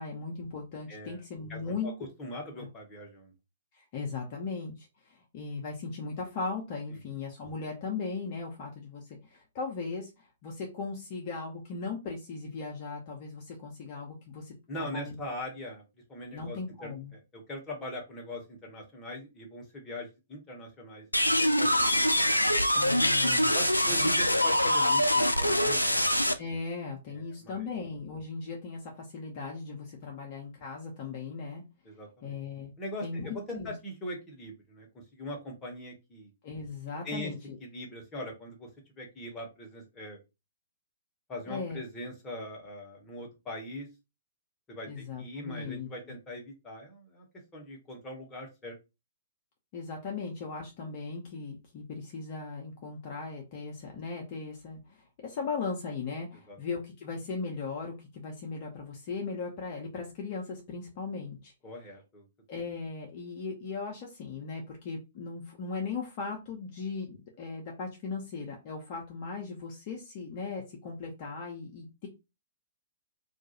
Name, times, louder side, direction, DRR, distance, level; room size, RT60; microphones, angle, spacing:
voice 1, 0.0-1.9 2.6-2.7 3.7-14.5 14.8-15.2 16.3-17.1 22.7-23.6 23.9-24.2 26.4-31.6 32.2-32.7 33.0-33.7 36.4-37.6 41.5-41.8 44.9-45.9 49.7-61.5 62.5-72.1, left 4 dB, 35° left, 0 dB, 0.6 m, -38 dB
voice 2, 0.9-1.2 1.5-1.9 2.2-3.3 14.7-15.8 16.1-21.1 21.4-22.6 23.5-26.1 27.1-27.7 31.8-32.3 32.8-34.9 35.1-36.3 37.0-37.3 37.6-38.7 39.0-40.2 41.3-43.9 44.7-47.3 47.5-48.7 56.5-56.6 61.6-62.3, left 1 dB, 15° left, 0 dB, 0.9 m, -41 dB
sound 1, 21.1-26.3, left 1 dB, 85° left, 0.3 m, -24 dB
2.4 x 2.3 x 2.8 m, 0.26 s
figure-of-eight pair, 115°, 0 cm